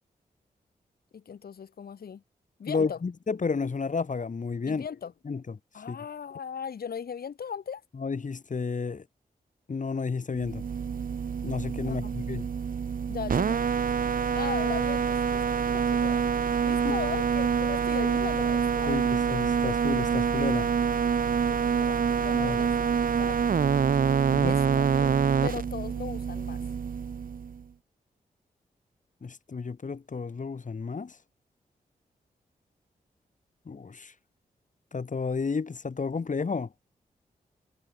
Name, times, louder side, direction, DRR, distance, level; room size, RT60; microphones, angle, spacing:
voice 1, 1.1-2.2 2.6-3.0 4.7-5.1 5.7-7.8 11.8-12.4 13.1-13.6 14.3-16.2 16.6-19.1 21.5-22.9 23.2-23.5 24.4-26.6, left 7 dB, 75° left, 3.0 m, -38 dB
voice 2, 2.7-4.8 5.2-5.6 5.9-6.0 8.0-9.0 9.7-10.6 11.4-12.5 16.8-16.9 18.9-20.7 22.3-22.6 24.3-24.6 29.2-31.1 33.7-34.1 34.9-36.7, left 5 dB, 50° left, 3.0 m, -31 dB
sound 1, 10.4-27.6, right 6 dB, 60° right, 1.1 m, -26 dB
cardioid pair, 50°, 16 cm